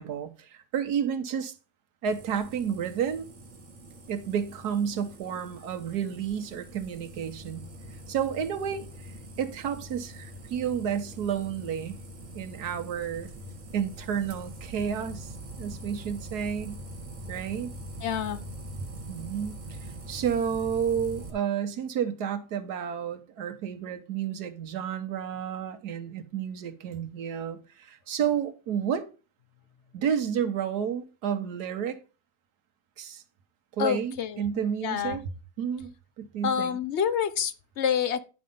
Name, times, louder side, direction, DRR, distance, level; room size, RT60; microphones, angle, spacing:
voice 1, 0.0-1.5 2.0-3.3 4.1-7.7 8.1-8.9 9.4-12.0 12.3-13.3 13.7-15.3 15.6-16.8 17.3-17.7 19.1-29.1 29.9-32.0 33.0-33.2 33.8-35.2 35.6-35.9 36.2-36.8, right 8 dB, 85° right, 1.5 m, -31 dB
sound 1, 2.0-21.3, right 1 dB, 55° right, 2.0 m, -43 dB
voice 2, 18.0-18.4 33.8-35.2 36.4-38.2, left 8 dB, 55° left, 0.9 m, -28 dB
10.5 x 5.3 x 5.2 m
omnidirectional pair, 1.7 m